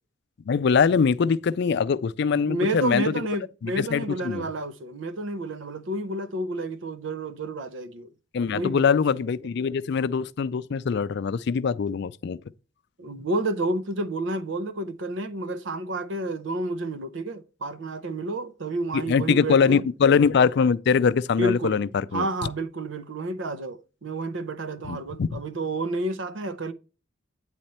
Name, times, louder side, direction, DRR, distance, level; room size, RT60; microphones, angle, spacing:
voice 1, 0.5-3.1 3.6-4.5 8.3-12.4 18.9-22.3 24.9-25.4, left 6 dB, 60° left, 0.4 m, -23 dB
voice 2, 2.3-8.1 8.5-9.0 13.0-19.8 21.4-26.7, right 2 dB, 75° right, 0.7 m, -30 dB
9.0 x 4.2 x 4.2 m
head